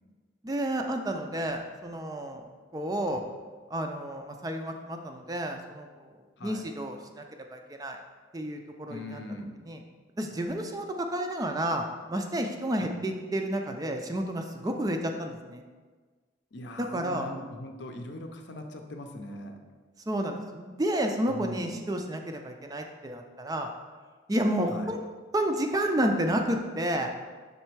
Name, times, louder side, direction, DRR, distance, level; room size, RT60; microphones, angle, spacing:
voice 1, 0.4-2.4 2.7-3.2 3.7-6.1 6.4-7.2 7.5-8.0 8.3-9.2 9.7-9.8 10.2-15.6 16.8-17.3 20.1-23.7 24.3-25.0 25.3-27.1, right 1 dB, 20° right, 4 dB, 0.4 m, -30 dB
voice 2, 8.9-9.6 12.8-12.9 16.5-19.5 21.3-21.7 24.7-24.9, left 1 dB, 60° left, 5 dB, 0.6 m, -40 dB
5.4 x 4.2 x 4.5 m, 1.4 s
head